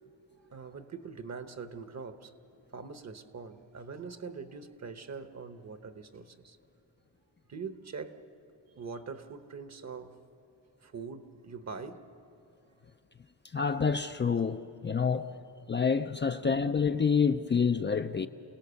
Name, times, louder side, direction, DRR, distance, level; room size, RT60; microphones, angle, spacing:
voice 1, 0.5-2.3 2.7-6.6 7.5-8.2 8.7-10.2 10.8-12.2 16.4-16.5, right 5 dB, 40° right, 1.1 m, -43 dB
voice 2, 13.5-15.3 15.7-18.3, left 6 dB, 25° left, 0.5 m, -28 dB
28.5 x 18.0 x 7.0 m
cardioid pair, 110°, 41 cm